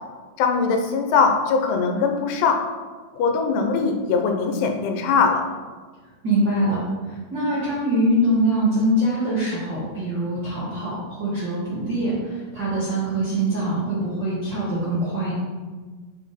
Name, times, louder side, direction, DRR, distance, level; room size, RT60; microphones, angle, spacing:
voice 1, 0.4-2.6 3.2-5.4, left 5 dB, 85° left, 4 dB, 2.8 m, -21 dB
voice 2, 6.2-15.3, right 1 dB, 55° right, -9 dB, 1.2 m, -23 dB
6.1 x 4.2 x 4.1 m, 1.4 s
omnidirectional pair, 4.6 m